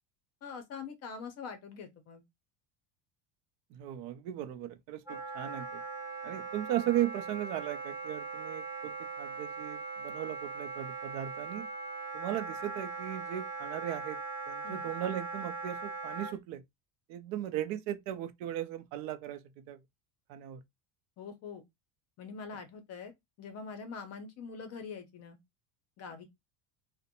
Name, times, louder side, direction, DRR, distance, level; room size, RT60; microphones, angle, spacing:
voice 1, 0.4-2.2 14.6-14.8 21.2-21.6 22.2-25.4 26.0-26.2, left 5 dB, 35° left, 0.5 m, -44 dB
voice 2, 3.7-5.8 6.2-11.7 12.1-14.2 14.5-16.6 17.1-19.8 20.3-20.6, right 12 dB, 65° right, 0.5 m, -37 dB
Wind instrument woodwind instrument, 5.1-16.3, right 4 dB, 5° right, 0.7 m, -40 dB
2.5 x 2.1 x 2.7 m
cardioid pair, 160°, 46 cm